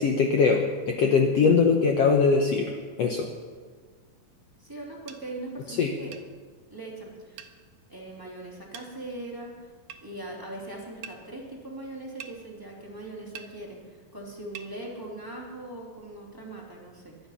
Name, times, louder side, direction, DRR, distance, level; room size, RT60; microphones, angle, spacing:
voice 1, 0.0-2.7 3.0-3.3 5.7-5.9, left 5 dB, 70° left, 2 dB, 1.5 m, -22 dB
voice 2, 4.6-6.1 6.7-7.5 7.9-9.7 10.0-17.3, right 2 dB, 5° right, -3 dB, 2.3 m, -40 dB
sound 1, 5.1-5.2 6.1-6.3 7.4-7.6 8.7-8.9 9.9-10.0 11.0-11.2 12.2-12.4 13.3-13.5 14.5-14.7, right 8 dB, 80° right, 2.6 m, -42 dB
22.5 x 10.0 x 5.8 m, 1.5 s
omnidirectional pair, 4.1 m